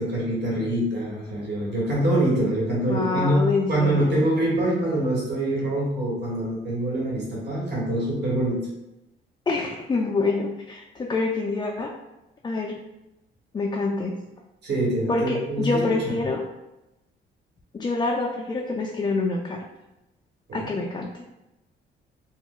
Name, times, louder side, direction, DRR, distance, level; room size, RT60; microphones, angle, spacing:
voice 1, 0.0-8.7 14.6-16.1 20.5-20.7, right 1 dB, 60° right, -5 dB, 1.3 m, -25 dB
voice 2, 2.9-4.2 9.5-11.9 12.4-12.8 13.5-14.1 15.1-16.4 17.7-19.6 20.5-21.1, left 3 dB, 20° left, -2 dB, 0.3 m, -26 dB
2.3 x 2.1 x 3.7 m, 0.94 s
cardioid pair, 90°, 20 cm